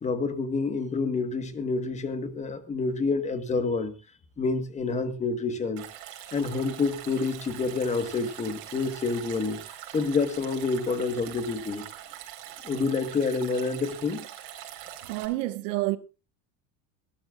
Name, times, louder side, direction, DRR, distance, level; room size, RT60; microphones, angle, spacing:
voice 1, 0.0-3.9 4.4-5.8 6.3-9.6 9.9-11.9 12.6-14.2, left 4 dB, 20° left, 1.3 m, -28 dB
Stream, 5.8-15.3, right 12 dB, 60° right, 4.2 m, -43 dB
voice 2, 15.1-16.0, right 19 dB, 90° right, 1.4 m, -28 dB
25.5 x 13.0 x 2.4 m
cardioid pair, 165°, 37 cm